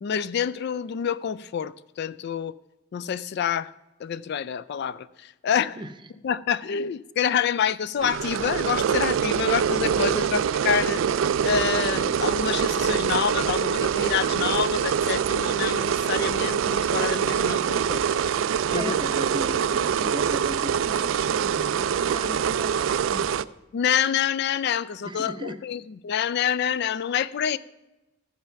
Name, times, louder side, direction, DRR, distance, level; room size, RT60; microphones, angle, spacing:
voice 1, 0.0-2.6 2.9-3.7 4.0-5.8 6.2-11.2 11.4-18.3 18.7-18.9 23.7-27.6, left 8 dB, 55° left, 0.3 m, -27 dB
sound 1, 8.0-23.4, right 7 dB, 70° right, 0.3 m, -24 dB
voice 2, 18.7-23.3 25.0-25.6, right 1 dB, 25° right, 0.5 m, -37 dB
14.5 x 5.7 x 5.7 m
head